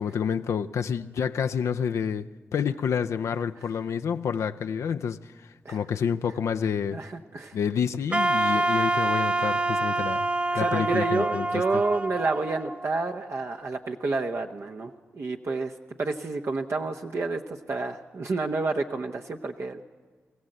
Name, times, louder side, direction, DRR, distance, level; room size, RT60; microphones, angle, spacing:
voice 1, 0.0-2.3 2.5-7.0 7.5-10.3 10.5-11.7, left 7 dB, 80° left, 8 dB, 0.5 m, -28 dB
voice 2, 6.9-7.6 10.5-15.7 16.0-19.8, right 3 dB, 60° right, 3 dB, 0.9 m, -29 dB
Wind instrument woodwind instrument, 8.1-13.2, right 2 dB, 25° right, 0.8 m, -26 dB
22.5 x 15.0 x 7.8 m, 1.5 s
supercardioid pair, 45°, 5 cm